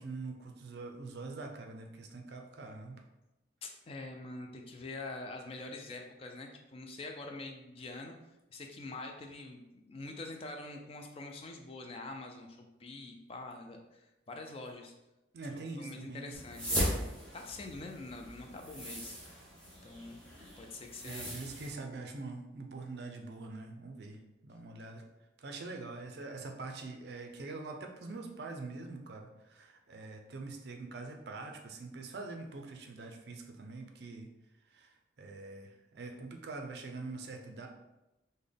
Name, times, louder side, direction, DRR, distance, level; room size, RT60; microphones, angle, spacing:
voice 1, 0.0-3.0 15.3-16.3 21.0-25.0 25.4-34.3 34.7-37.7, right 3 dB, 55° right, 3 dB, 0.4 m, -44 dB
voice 2, 3.6-8.1 8.5-14.9 15.5-17.0 17.3-19.2 19.8-20.2 20.6-21.3, left 2 dB, 30° left, 3 dB, 0.3 m, -45 dB
sound 1, 16.3-21.7, equal, 5° left, 0.8 m, -38 dB
3.7 x 2.1 x 3.4 m, 0.98 s
head